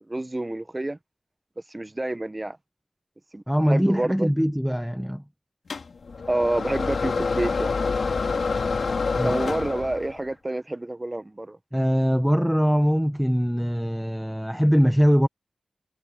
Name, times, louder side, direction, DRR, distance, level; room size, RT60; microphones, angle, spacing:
voice 1, 0.1-1.0 1.7-2.6 3.3-3.4 3.7-4.3 6.3-7.7 9.2-11.6, right 1 dB, 20° right, 1.3 m, -28 dB
voice 2, 3.5-5.2 9.1-9.3 11.7-15.3, equal, ahead, 1.2 m, -22 dB
sound 1, 5.7-10.2, left 4 dB, 75° left, 2.4 m, -27 dB
wide cardioid pair, 85°, 0 cm